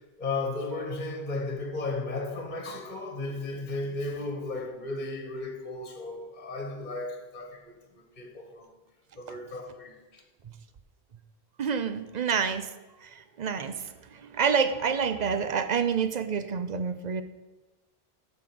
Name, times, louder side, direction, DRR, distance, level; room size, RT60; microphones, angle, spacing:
voice 1, 0.0-8.7 9.2-10.2, left 2 dB, 45° left, 1.4 m, -35 dB
voice 2, 11.6-12.7 13.0-17.2, right 6 dB, 50° right, 0.7 m, -28 dB
7.4 x 6.4 x 7.6 m
omnidirectional pair, 1.1 m